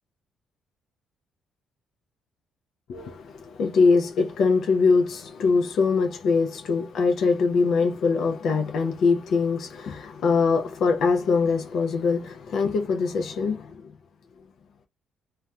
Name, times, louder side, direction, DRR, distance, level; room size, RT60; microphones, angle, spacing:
voice 1, 2.9-13.8, left 4 dB, 70° left, 0.4 m, -23 dB
2.7 x 2.1 x 2.3 m
cardioid pair, 85°, 0 cm